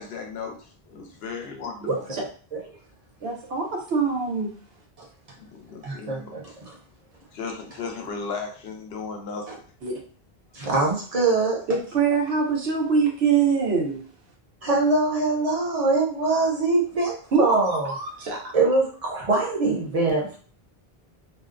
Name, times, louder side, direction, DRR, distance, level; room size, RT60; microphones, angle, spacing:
voice 1, 0.0-1.9 5.4-6.3 7.3-9.6, left 4 dB, 80° left, 3 dB, 0.8 m, -35 dB
voice 2, 1.8-2.2 3.2-4.5 9.8-9.9 11.7-14.0 17.3-18.4, right 5 dB, 85° right, 1 dB, 1.0 m, -24 dB
voice 3, 5.8-6.8 10.5-11.6 14.6-17.9 18.5-20.4, right 3 dB, 40° right, -2 dB, 0.7 m, -23 dB
2.6 x 2.2 x 2.4 m, 0.42 s
omnidirectional pair, 1.0 m